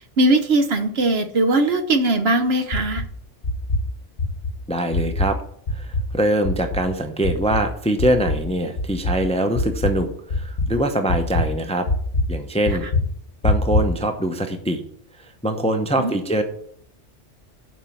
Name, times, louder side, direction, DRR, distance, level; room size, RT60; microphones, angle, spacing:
voice 1, 0.0-3.0 12.7-12.9 16.0-16.2, right 2 dB, 60° right, 9 dB, 1.0 m, -20 dB
sound 1, 2.7-3.1 3.4-3.9 4.2-4.5 4.9-5.4 5.7-6.1 6.4-6.8 7.2-7.6 8.0-8.5 8.8-9.2 9.6-10.0 10.3-10.7 11.1-11.5 11.9-12.3 12.7-13.1 13.4-13.9, left 2 dB, 55° left, 1.5 m, -22 dB
voice 2, 4.7-5.4 5.7-11.9 12.3-12.9 13.4-14.8 15.2-16.4, right 1 dB, 5° left, 7 dB, 0.6 m, -23 dB
7.3 x 5.3 x 7.3 m, 0.65 s
omnidirectional pair, 1.2 m